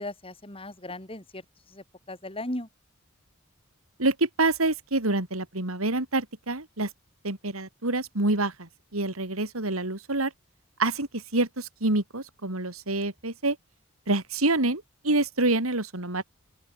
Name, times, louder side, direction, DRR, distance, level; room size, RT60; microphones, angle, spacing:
voice 1, 0.0-2.7, left 1 dB, 25° left, 6.2 m, -37 dB
voice 2, 4.0-6.9 7.2-10.3 10.8-13.6 14.1-16.2, right 2 dB, 90° right, 3.4 m, -27 dB
open air
head